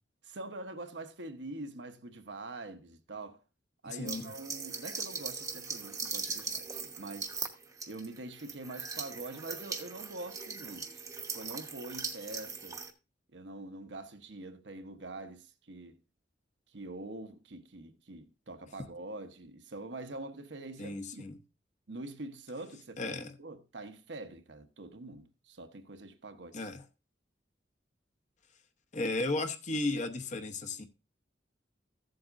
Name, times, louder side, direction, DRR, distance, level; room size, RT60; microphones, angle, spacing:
voice 1, 0.2-3.4 3.8-7.3 7.9-10.9 11.3-12.8 13.3-16.0 16.7-21.3 21.9-23.1 23.4-26.7, right 2 dB, 70° right, 1.0 m, -44 dB
voice 2, 3.8-4.3 20.8-21.4 23.0-23.3 26.5-26.8 28.9-30.8, left 2 dB, 40° left, 0.8 m, -34 dB
sound 1, 4.1-12.9, right 4 dB, 20° right, 0.9 m, -40 dB
14.5 x 7.7 x 2.5 m
head